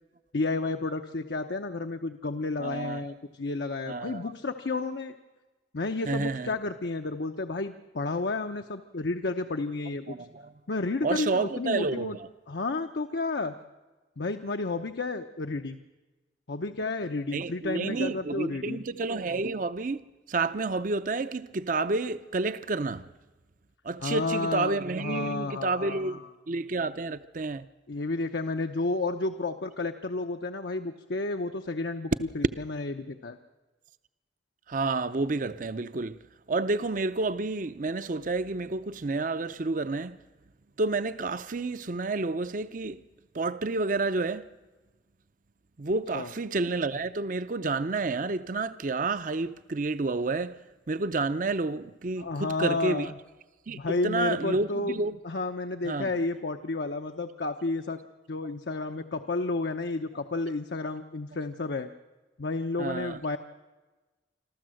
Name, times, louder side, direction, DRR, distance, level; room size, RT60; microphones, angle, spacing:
voice 1, 0.3-5.2 5.7-10.2 10.7-12.2 12.5-13.5 14.2-15.8 16.5-18.8 24.0-26.3 27.9-33.4 46.1-46.3 52.2-53.1 53.8-55.0 55.2-58.0 58.3-61.9 62.4-63.4, left 3 dB, 70° left, 0.8 m, -31 dB
voice 2, 2.6-3.1 3.9-4.2 6.1-6.5 10.1-10.5 11.0-12.2 17.3-20.0 20.3-23.1 23.8-26.2 26.5-27.6 34.7-36.2 36.5-40.2 40.8-43.0 43.3-44.5 45.8-50.6 50.9-53.1 53.7-55.1 55.8-56.1 62.8-63.2, right 3 dB, 45° right, 0.6 m, -30 dB
26.0 x 13.5 x 7.7 m
head